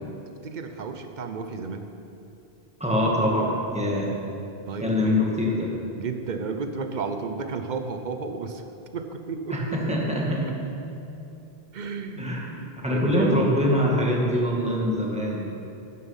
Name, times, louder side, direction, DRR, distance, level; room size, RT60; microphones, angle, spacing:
voice 1, 0.4-1.9 4.7-5.1 5.9-8.6 8.9-10.0 11.7-12.3 12.5-13.5, right 4 dB, 50° right, 7 dB, 0.9 m, -32 dB
voice 2, 2.8-4.1 4.8-5.7 9.5-10.6 12.2-12.5 12.8-15.5, left 1 dB, 5° right, -3 dB, 1.8 m, -24 dB
11.5 x 9.6 x 5.7 m, 2.8 s
omnidirectional pair, 1.1 m